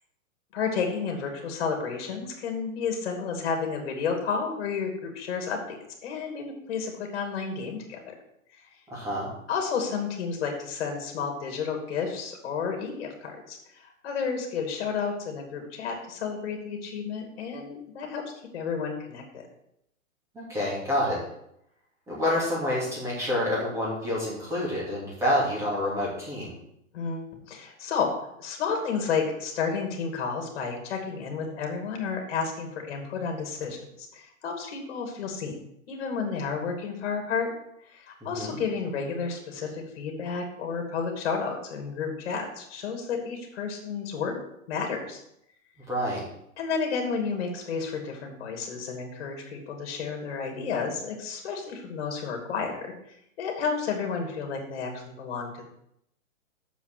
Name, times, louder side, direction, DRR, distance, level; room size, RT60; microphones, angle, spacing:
voice 1, 0.5-8.1 9.5-18.2 18.5-19.5 26.9-28.1 28.4-35.5 35.9-37.5 37.9-44.3 44.7-45.2 46.6-52.9 53.4-55.7, left 5 dB, 45° left, 3 dB, 2.5 m, -31 dB
voice 2, 8.9-9.3 20.3-21.2 22.1-26.5 38.3-38.6 45.9-46.2, left 1 dB, 5° right, -6 dB, 2.8 m, -28 dB
7.1 x 6.0 x 7.6 m, 0.76 s
hypercardioid pair, 165°, 41 cm